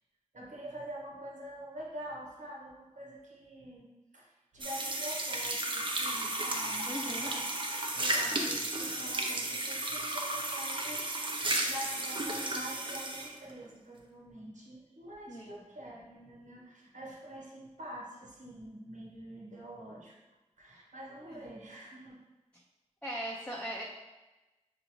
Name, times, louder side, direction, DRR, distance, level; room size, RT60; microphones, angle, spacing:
voice 1, 0.3-3.9 4.1-20.1 20.6-22.2, right 1 dB, 75° right, -4 dB, 1.0 m, -46 dB
sound 1, 4.6-13.3, right 2 dB, 40° right, 0.6 m, -33 dB
voice 2, 6.9-7.3 15.3-15.6 21.2-21.5 23.0-23.8, equal, 10° left, -5 dB, 0.5 m, -39 dB
5.8 x 2.6 x 3.0 m, 1.1 s
wide cardioid pair, 80°, 13 cm